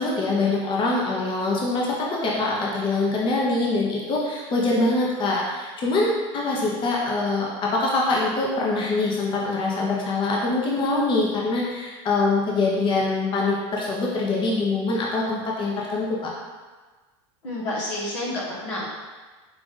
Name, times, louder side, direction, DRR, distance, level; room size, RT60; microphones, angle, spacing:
voice 1, 0.0-16.3, left 3 dB, 35° left, -3 dB, 0.8 m, -24 dB
voice 2, 17.4-18.9, left 1 dB, 80° left, -5 dB, 1.3 m, -29 dB
4.8 x 2.5 x 3.7 m, 1.3 s
supercardioid pair, 105°, 15 cm